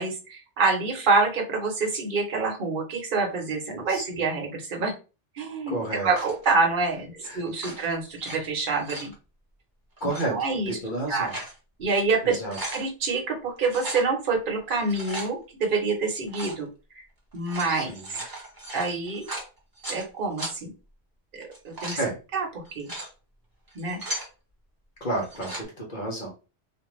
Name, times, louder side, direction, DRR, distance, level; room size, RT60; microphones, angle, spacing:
voice 1, 0.0-4.9 5.3-9.1 10.2-10.8 11.1-11.3 11.8-12.4 12.7-16.7 17.3-17.9 18.7-19.3 19.9-20.7 21.6-22.0 22.3-22.5 22.8-22.9 23.7-24.0, right 4 dB, 50° right, 1 dB, 0.9 m, -26 dB
voice 2, 5.7-6.1 7.2-7.4 10.0-10.3 10.7-11.4 12.2-12.6 17.7-18.0 22.0-22.1 25.0-26.3, right 1 dB, 50° left, 0 dB, 0.9 m, -31 dB
sound 1, 6.1-6.5 7.5-8.4 8.7-9.1 10.0-10.3 10.9-11.6 12.0-12.1 12.3-12.8 13.7-14.1 14.7-15.3 16.3-16.6 17.3-20.0 20.4-20.5 21.4-22.0 22.6-23.1 23.7-24.3 25.2-25.6, right 1 dB, 25° right, 0.7 m, -37 dB
2.6 x 2.2 x 3.0 m, 0.32 s
omnidirectional pair, 1.2 m